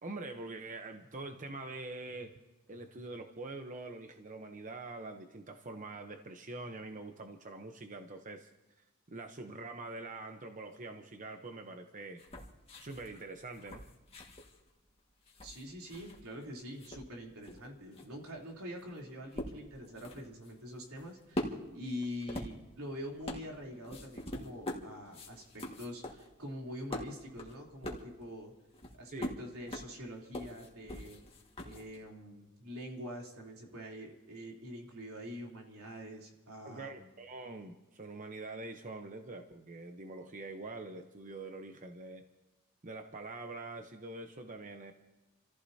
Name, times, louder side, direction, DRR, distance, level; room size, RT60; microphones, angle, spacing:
voice 1, 0.0-2.3 2.7-8.5 9.1-12.2 12.8-13.8 29.1-29.4 36.6-42.2 42.8-44.9, right 2 dB, 35° right, 5 dB, 0.9 m, -44 dB
sound 1, 12.2-16.4 16.7-32.1, left 1 dB, 25° left, 1.9 m, -44 dB
voice 2, 15.4-28.5 29.0-31.2 31.6-37.1, equal, 80° right, -1 dB, 3.4 m, -45 dB
29.5 x 15.0 x 2.8 m, 1.1 s
head